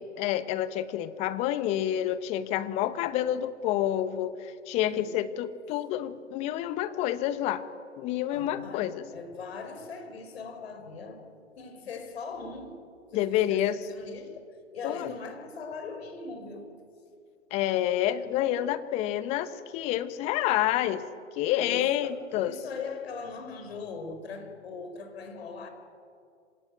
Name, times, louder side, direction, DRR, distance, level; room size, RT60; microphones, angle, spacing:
voice 1, 0.0-7.6 8.0-9.1 13.1-13.8 14.8-15.1 17.5-21.0 21.4-22.5, left 12 dB, 15° left, 13 dB, 0.9 m, -28 dB
voice 2, 4.8-5.2 8.3-11.3 11.6-12.8 13.1-16.7 21.6-25.7, left 4 dB, 55° left, 6 dB, 4.7 m, -40 dB
26.0 x 17.5 x 9.1 m, 2.3 s
figure-of-eight pair, 130°, 37 cm